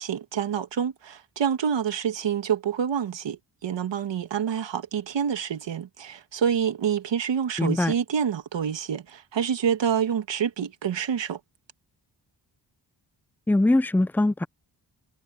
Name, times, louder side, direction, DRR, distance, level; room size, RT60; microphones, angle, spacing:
voice 1, 0.0-11.4, right 8 dB, 80° right, 2.1 m, -27 dB
voice 2, 7.6-7.9 13.5-14.5, left 2 dB, 5° left, 0.5 m, -22 dB
wide cardioid pair, 110°, 43 cm